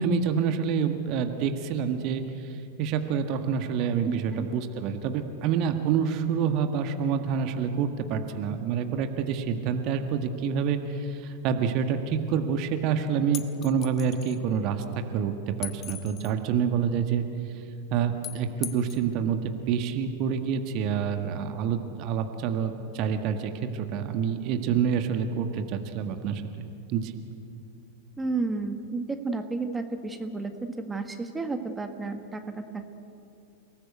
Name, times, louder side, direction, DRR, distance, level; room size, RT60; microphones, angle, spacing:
voice 1, 0.0-17.2 17.5-17.6 17.9-26.4 26.9-27.1, right 7 dB, 40° right, 7 dB, 1.6 m, -27 dB
voice 2, 4.0-4.5 28.2-32.4, right 3 dB, 10° right, 7 dB, 1.8 m, -31 dB
sound 1, 13.3-14.4 15.6-16.4 18.2-19.0, left 11 dB, 30° left, 1.3 m, -39 dB
30.0 x 19.0 x 8.1 m, 2.6 s
figure-of-eight pair, 90°, 0 cm